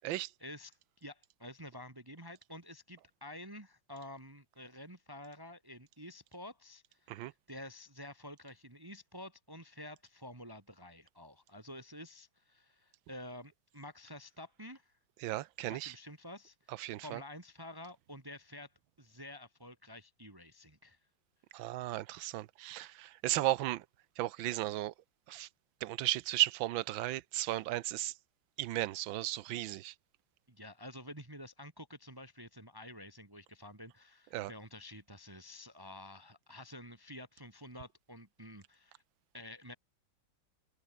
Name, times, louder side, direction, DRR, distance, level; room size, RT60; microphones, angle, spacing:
voice 1, 0.4-14.9 15.6-16.7 17.0-21.0 30.5-39.0 39.3-39.7, left 1 dB, 10° right, 1.5 m, -50 dB
voice 2, 15.2-15.9 16.8-17.2 21.5-23.8 24.2-24.9 25.3-25.5 25.8-28.1 28.6-29.9 34.3-34.5, right 15 dB, 90° right, 1.5 m, -35 dB
omnidirectional pair, 2.1 m